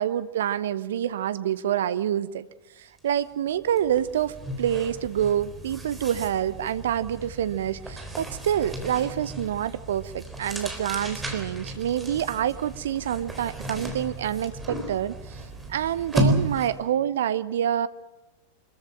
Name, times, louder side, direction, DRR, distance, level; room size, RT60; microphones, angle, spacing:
voice 1, 0.0-2.5 2.8-15.4 15.7-17.9, right 10 dB, 60° right, 16 dB, 0.8 m, -27 dB
sound 1, 3.0-3.2 3.5-16.9, right 1 dB, 10° right, 3.8 m, -33 dB
25.0 x 14.5 x 8.9 m, 1.1 s
figure-of-eight pair, 90°, 0 cm